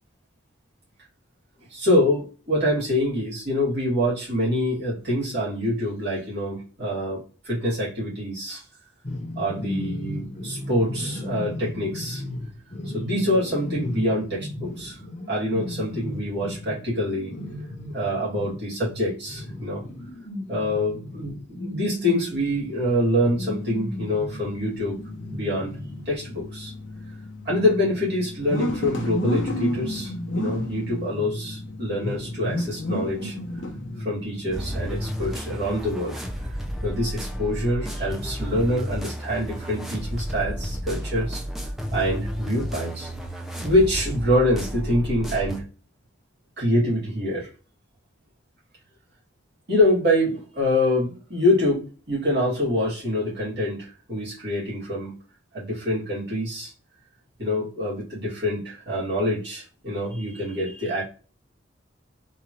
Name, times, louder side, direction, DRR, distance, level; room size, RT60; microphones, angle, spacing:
voice 1, 1.7-8.6 9.3-12.2 12.9-15.0 15.3-17.3 17.9-19.8 20.5-25.0 25.3-25.8 26.1-26.7 27.4-33.4 34.0-36.2 36.8-41.4 41.9-43.1 43.6-45.6 46.6-47.5 49.7-55.1 55.5-56.7 57.4-61.0, left 1 dB, 55° right, -7 dB, 2.1 m, -25 dB
sound 1, 9.0-22.7 23.1-26.0, left 1 dB, 35° left, 0.7 m, -35 dB
sound 2, 22.6-35.9, left 1 dB, 70° left, 0.7 m, -33 dB
sound 3, 34.5-45.6, equal, ahead, 0.4 m, -32 dB
3.8 x 3.0 x 2.9 m, 0.37 s
head